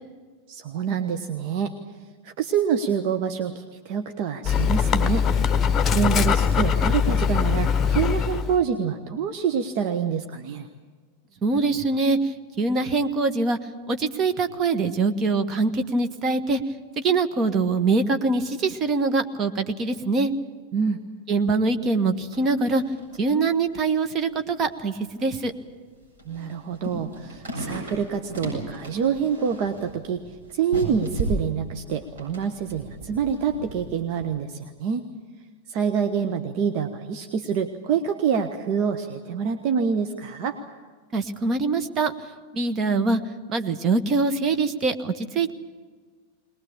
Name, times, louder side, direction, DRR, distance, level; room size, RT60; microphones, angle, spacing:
voice 1, 0.5-1.7 2.2-5.3 5.7-10.7 20.7-21.0 26.2-35.1 35.7-40.6, right 7 dB, 45° right, 6 dB, 1.1 m, -26 dB
Dog, 4.4-8.6, left 7 dB, 20° left, 1.2 m, -22 dB
voice 2, 11.4-13.6 13.9-16.6 17.0-20.3 21.3-22.8 23.2-25.5 41.1-42.1 42.5-43.2 43.5-45.5, right 3 dB, 30° right, 8 dB, 1.5 m, -23 dB
sound 1, 22.1-22.5 22.8-23.2 23.6-23.7 24.5-24.6 25.2-25.5 26.0-33.8 34.1-34.2, right 2 dB, 60° right, 7.9 m, -35 dB
22.0 x 20.0 x 8.8 m, 1.4 s
figure-of-eight pair, 90°, 0 cm